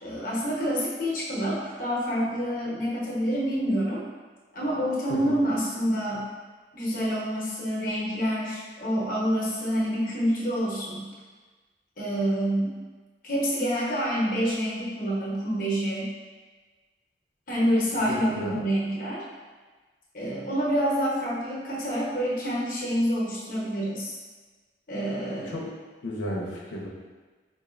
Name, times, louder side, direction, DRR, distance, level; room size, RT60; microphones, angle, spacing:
voice 1, 0.0-4.0 4.5-6.2 6.7-11.1 12.0-12.7 13.2-16.1 17.5-19.2 20.1-24.1 24.9-25.6, equal, 50° left, -5 dB, 0.9 m, -27 dB
voice 2, 18.1-18.6 25.4-25.7 26.0-26.9, left 1 dB, 85° left, -3 dB, 0.8 m, -34 dB
5.2 x 2.6 x 2.5 m, 1.4 s
head